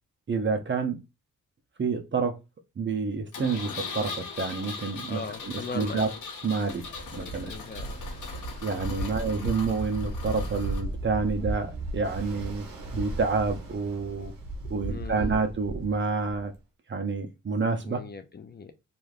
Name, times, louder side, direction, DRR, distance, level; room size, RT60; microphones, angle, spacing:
voice 1, 0.3-1.0 1.8-2.4 2.8-6.1 6.4-6.8 7.1-7.5 8.6-12.7 12.9-14.3 14.7-16.5 16.9-18.0, right 4 dB, 35° right, 0.7 m, -28 dB
Engine, 3.3-10.8, left 5 dB, 70° left, 0.8 m, -40 dB
voice 2, 5.1-6.1 7.2-7.9 8.9-9.3 14.9-15.4 17.8-18.7, left 4 dB, 30° left, 0.4 m, -39 dB
Ocean, 6.7-16.6, right 2 dB, 90° right, 0.8 m, -35 dB
3.1 x 2.5 x 2.4 m
cardioid pair, 60°, 32 cm